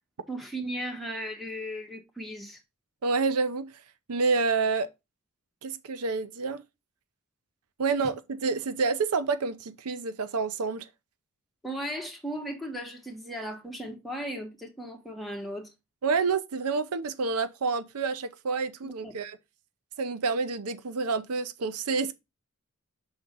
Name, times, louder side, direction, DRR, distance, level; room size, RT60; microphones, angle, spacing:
voice 1, 0.3-2.6 11.6-15.7 18.8-19.1, equal, ahead, 1.4 m, -36 dB
voice 2, 3.0-3.8 4.1-4.9 5.6-6.6 7.8-10.9 16.0-19.4 20.0-22.1, right 4 dB, 80° right, 0.6 m, -28 dB
6.2 x 3.7 x 5.3 m
head